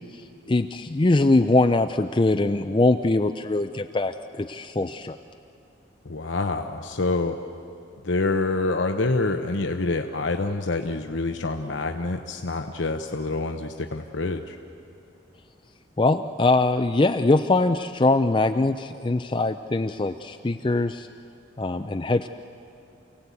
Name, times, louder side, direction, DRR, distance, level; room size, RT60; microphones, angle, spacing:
voice 1, 0.5-5.2 16.0-21.1 21.6-22.3, left 2 dB, 25° left, 7 dB, 0.5 m, -22 dB
voice 2, 6.0-7.4 8.0-14.6, left 3 dB, 80° left, 5 dB, 0.9 m, -26 dB
28.5 x 17.5 x 8.3 m, 2.7 s
head